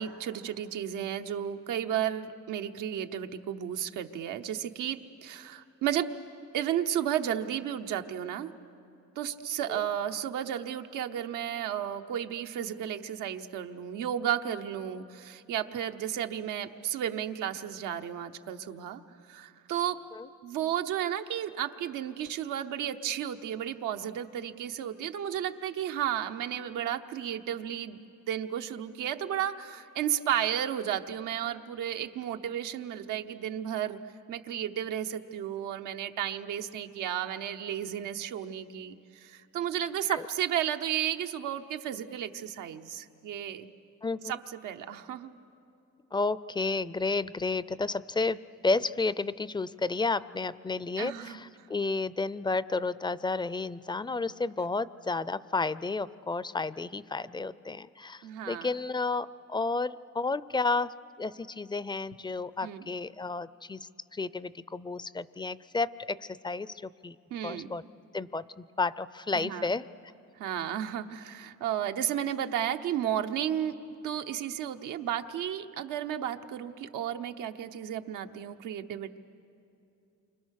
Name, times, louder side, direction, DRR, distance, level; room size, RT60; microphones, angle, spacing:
voice 1, 0.0-6.1 6.5-8.5 9.2-19.0 19.3-20.0 20.4-28.0 28.3-34.0 34.3-43.7 44.2-45.3 51.0-51.4 58.2-58.7 62.6-62.9 67.3-67.7 69.3-69.7 70.4-73.7 74.0-79.2, right 10 dB, 90° right, 6 dB, 1.0 m, -33 dB
voice 2, 44.0-44.4 46.1-67.2 67.4-67.8 68.1-69.9, left 3 dB, 15° left, 17 dB, 0.5 m, -32 dB
29.0 x 25.0 x 6.5 m, 2.6 s
cardioid pair, 90°, 30 cm